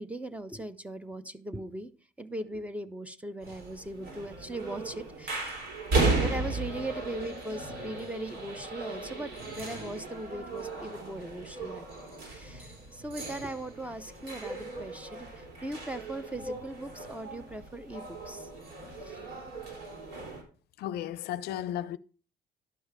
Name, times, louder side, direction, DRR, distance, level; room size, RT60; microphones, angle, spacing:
voice 1, 0.0-1.9 2.2-5.6 6.2-11.8 12.3-18.5 18.8-19.4, right 1 dB, 10° right, 0.7 m, -39 dB
sound 1, 3.4-20.4, right 3 dB, 75° right, 3.9 m, -36 dB
voice 2, 20.8-22.0, left 11 dB, 75° left, 0.5 m, -34 dB
11.5 x 5.4 x 4.8 m
cardioid pair, 110°, 17 cm